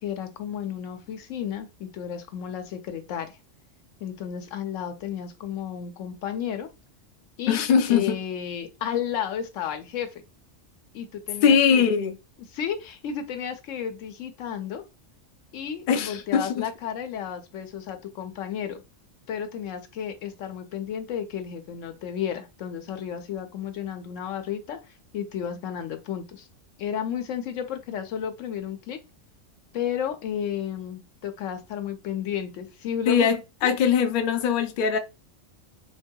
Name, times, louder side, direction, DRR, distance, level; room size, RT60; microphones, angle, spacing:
voice 1, 0.0-3.3 4.0-6.7 7.4-7.6 7.9-10.2 10.9-11.8 12.5-14.8 15.5-18.8 19.3-24.8 25.1-26.5 26.8-29.0 29.7-33.4 33.6-33.7, left 9 dB, 90° left, 1.0 m, -32 dB
voice 2, 7.5-8.2 11.4-12.1 15.9-16.6 33.1-33.4 33.6-35.0, left 7 dB, 55° left, 0.6 m, -21 dB
3.9 x 2.7 x 2.2 m
omnidirectional pair, 1.3 m